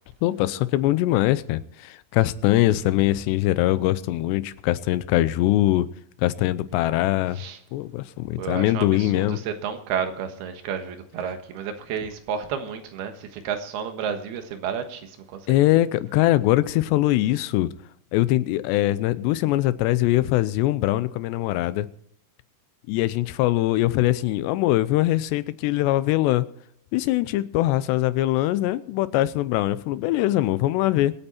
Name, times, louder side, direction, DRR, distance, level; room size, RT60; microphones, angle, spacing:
voice 1, 0.2-5.9 6.2-7.4 7.7-9.4 15.5-17.7 18.1-21.9 22.9-26.5 26.9-31.1, left 15 dB, 90° left, 2.9 m, -22 dB
voice 2, 8.4-15.8, right 7 dB, 75° right, 3.3 m, -31 dB
24.5 x 8.9 x 4.4 m
omnidirectional pair, 4.8 m